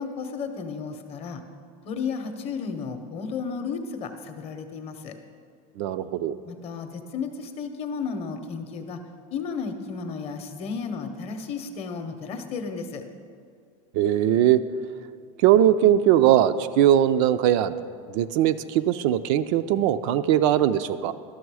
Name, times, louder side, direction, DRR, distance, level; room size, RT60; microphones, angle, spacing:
voice 1, 0.0-1.4 1.8-5.1 6.5-9.0 9.3-13.0, left 5 dB, 35° left, 7 dB, 0.7 m, -33 dB
voice 2, 5.8-6.4 13.9-14.6 15.4-17.7 18.1-21.1, right 11 dB, 55° right, 12 dB, 0.4 m, -20 dB
12.5 x 6.1 x 4.7 m, 2.1 s
supercardioid pair, 150°, 18 cm